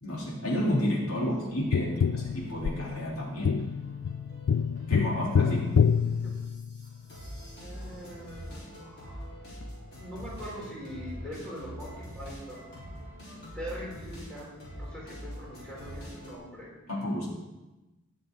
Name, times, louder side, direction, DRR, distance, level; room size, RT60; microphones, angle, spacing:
voice 1, 0.0-3.6 4.9-5.8 16.9-17.3, equal, 85° left, -4 dB, 3.4 m, -30 dB
sound 1, 1.2-16.3, equal, 50° left, 4.1 m, -45 dB
Tap, 1.7-7.0 9.6-9.7, left 6 dB, 70° left, 0.3 m, -27 dB
voice 2, 6.1-6.4 7.6-9.3 10.0-12.8 13.5-16.7, equal, 5° left, -6 dB, 3.7 m, -42 dB
19.5 x 6.8 x 3.9 m, 1.1 s
head